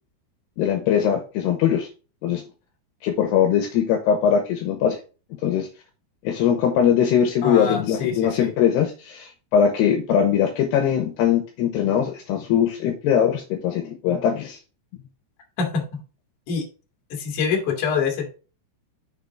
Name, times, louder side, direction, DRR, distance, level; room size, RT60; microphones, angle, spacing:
voice 1, 0.6-1.9 2.2-2.4 3.0-5.0 5.4-5.7 6.2-14.6, left 8 dB, 75° left, 5 dB, 3.0 m, -21 dB
voice 2, 7.4-8.5 15.6-16.0 16.5-16.6 17.1-18.3, left 6 dB, 50° left, 3 dB, 2.9 m, -25 dB
6.7 x 6.6 x 3.5 m, 0.33 s
omnidirectional pair, 5.1 m